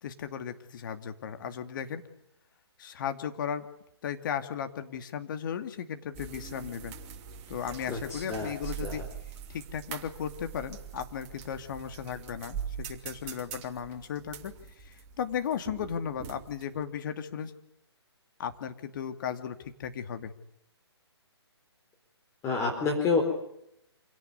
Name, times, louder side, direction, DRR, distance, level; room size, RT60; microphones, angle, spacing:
voice 1, 0.0-2.0 2.8-3.7 4.0-6.9 7.5-9.0 9.5-17.5 18.4-20.3, left 8 dB, 45° left, 8 dB, 2.6 m, -36 dB
sound 1, 6.1-16.8, right 8 dB, 30° right, 2.9 m, -43 dB
voice 2, 7.9-8.5 8.8-9.0 22.4-23.2, left 4 dB, 20° left, 3 dB, 4.4 m, -28 dB
27.0 x 18.0 x 9.6 m, 0.78 s
figure-of-eight pair, 140°, 14 cm